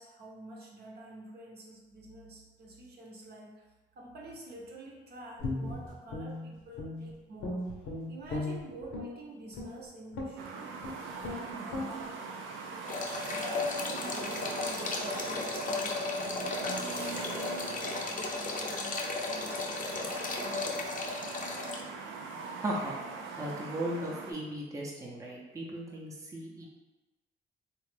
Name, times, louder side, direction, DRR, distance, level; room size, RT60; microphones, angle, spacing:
voice 1, 0.0-3.7 3.9-7.7 8.1-10.8 11.2-12.2 13.3-20.7, right 2 dB, 55° right, -2 dB, 0.8 m, -48 dB
Guitar, 5.4-7.1 7.4-9.1 9.5-9.8 10.1-10.4 10.8-10.9 11.2-11.4 11.7-11.9, left 2 dB, 85° left, 0.8 m, -36 dB
sound 1, 10.4-24.3, right 4 dB, 80° right, 0.5 m, -41 dB
sound 2, 12.9-21.8, left 3 dB, 40° left, 0.6 m, -35 dB
voice 2, 22.6-22.9 23.4-26.7, right 1 dB, 15° right, -3 dB, 0.6 m, -36 dB
3.2 x 2.4 x 3.3 m, 1.2 s
cardioid pair, 90°, 20 cm